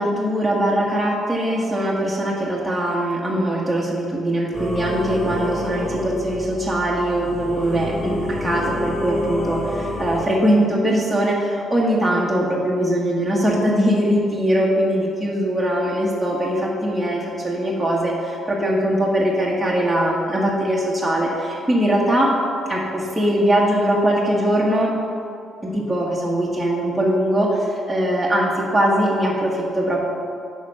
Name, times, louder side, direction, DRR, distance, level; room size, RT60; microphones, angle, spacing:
voice 1, 0.0-22.3 22.7-24.9 25.6-30.0, right 1 dB, 5° right, -5 dB, 1.3 m, -21 dB
Singing / Musical instrument, 4.5-10.2, left 1 dB, 30° left, 2.2 m, -28 dB
8.7 x 5.5 x 5.5 m, 2.5 s
cardioid pair, 90°, 0 cm